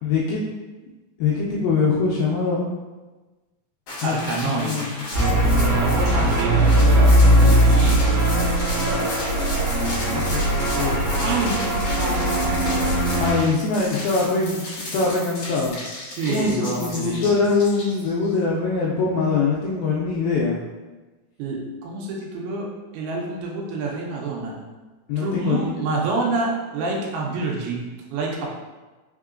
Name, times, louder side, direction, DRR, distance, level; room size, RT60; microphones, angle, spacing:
voice 1, 0.0-0.5 1.2-2.7 4.0-4.9 8.9-10.4 10.8-11.2 13.2-15.7 16.2-20.6 25.1-25.8, left 4 dB, 85° left, -4 dB, 2.1 m, -23 dB
sound 1, 3.9-18.3, left 2 dB, 60° left, 1.6 m, -35 dB
voice 2, 4.0-4.7 5.6-8.2 11.2-11.5 12.0-13.1 16.2-17.3 21.4-22.6 22.9-24.6 25.2-28.5, right 3 dB, 80° right, -2 dB, 2.6 m, -28 dB
sound 2, 5.1-13.3, right 1 dB, 50° right, 1.7 m, -19 dB
5.5 x 3.7 x 2.4 m, 1.2 s
omnidirectional pair, 4.7 m